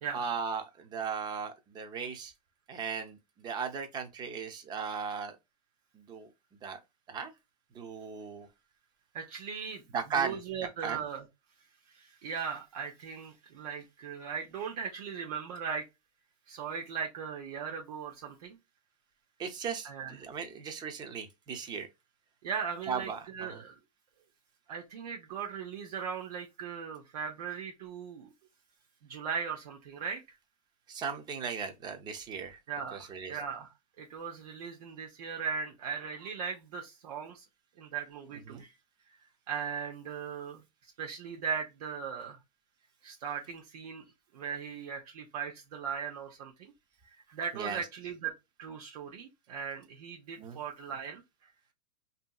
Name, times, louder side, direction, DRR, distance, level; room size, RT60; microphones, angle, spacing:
voice 1, 0.1-2.3 2.7-5.4 5.9-6.3 6.6-6.8 7.1-7.3 7.7-8.5 9.9-10.4 10.8-11.0 19.4-21.9 22.9-23.6 30.9-32.6 32.9-33.4 38.5-38.6 47.5-47.8 50.4-50.6, right 6 dB, 20° right, 0.5 m, -37 dB
voice 2, 9.1-9.9 10.1-11.2 11.9-15.8 16.5-18.6 19.8-20.1 22.4-23.8 24.7-28.3 29.0-30.4 32.7-33.7 34.0-37.4 37.8-38.7 39.1-40.6 41.0-42.4 43.0-44.0 44.3-46.5 47.1-48.3 48.6-51.2, right 6 dB, 65° right, 0.7 m, -38 dB
2.7 x 2.7 x 2.2 m
hypercardioid pair, 130°, 21 cm